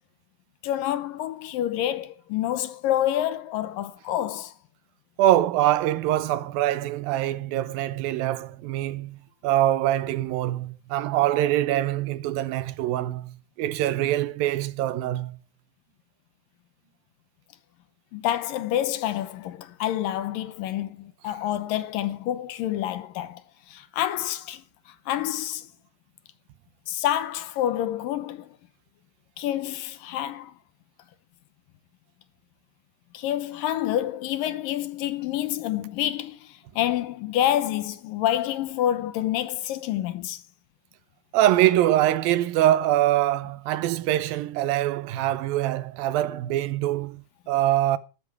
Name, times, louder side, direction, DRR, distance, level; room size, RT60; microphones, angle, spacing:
voice 1, 0.6-4.5 18.1-23.4 23.7-24.6 25.1-25.7 26.9-28.5 29.4-30.5 33.1-36.4 36.8-40.4, left 12 dB, 75° left, 2.5 m, -28 dB
voice 2, 5.2-15.4 41.3-48.0, right 13 dB, 80° right, 2.6 m, -24 dB
13.5 x 13.0 x 4.7 m
omnidirectional pair, 4.2 m